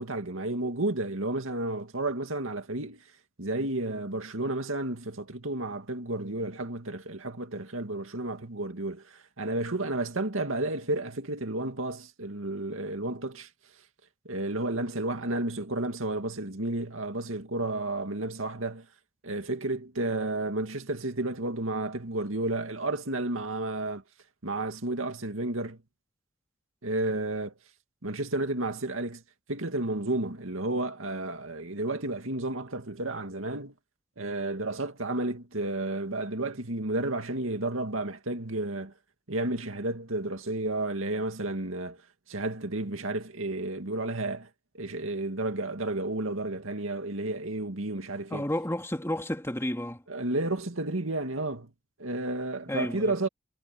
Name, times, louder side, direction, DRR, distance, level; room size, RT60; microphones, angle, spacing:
voice 1, 0.0-3.0 3.4-13.5 14.2-18.9 19.2-24.0 24.4-25.8 26.8-27.5 28.0-29.2 29.5-33.7 34.2-38.9 39.3-42.0 42.3-44.5 44.7-48.4 50.1-51.7 52.0-53.3, right 2 dB, 85° right, 2.3 m, -32 dB
voice 2, 48.3-50.0 52.7-53.1, left 1 dB, 15° left, 2.5 m, -31 dB
head